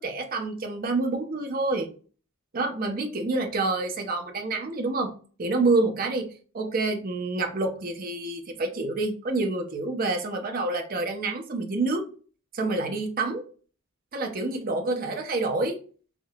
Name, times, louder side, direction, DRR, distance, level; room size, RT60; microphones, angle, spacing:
voice 1, 0.0-1.9 2.5-5.1 5.4-12.1 12.5-13.4 14.1-15.8, right 3 dB, 45° right, 4 dB, 0.6 m, -27 dB
3.6 x 2.7 x 2.3 m, 0.38 s
head